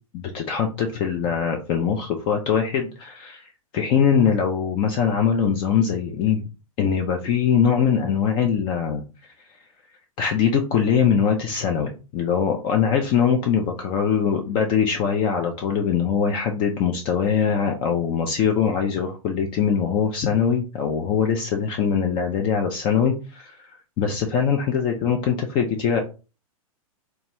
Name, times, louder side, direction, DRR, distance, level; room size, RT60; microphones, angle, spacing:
voice 1, 0.1-3.4 3.7-6.4 6.8-9.0 10.2-23.5 24.0-26.0, left 7 dB, 30° left, 3 dB, 0.4 m, -22 dB
2.8 x 2.3 x 2.8 m, 0.33 s
figure-of-eight pair, 110°, 18 cm